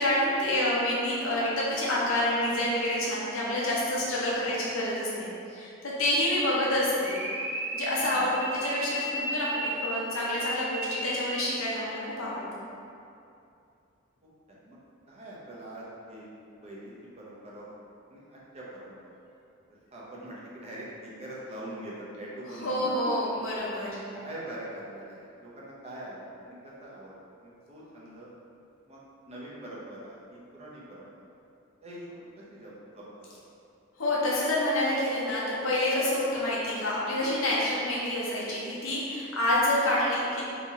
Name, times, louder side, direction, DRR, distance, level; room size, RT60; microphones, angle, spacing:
voice 1, 0.0-7.2 7.7-12.6 22.5-24.0 34.0-40.4, left 1 dB, 75° left, -6 dB, 0.9 m, -28 dB
sound 1, 7.0-11.7, right 1 dB, 10° right, 0.3 m, -34 dB
voice 2, 8.0-8.3 14.5-14.8 15.1-16.3 16.6-17.7 18.1-19.0 19.9-23.2 24.1-28.3 28.9-31.1 31.8-33.2, right 1 dB, 30° right, -6 dB, 0.7 m, -43 dB
3.0 x 2.8 x 3.6 m, 2.6 s
head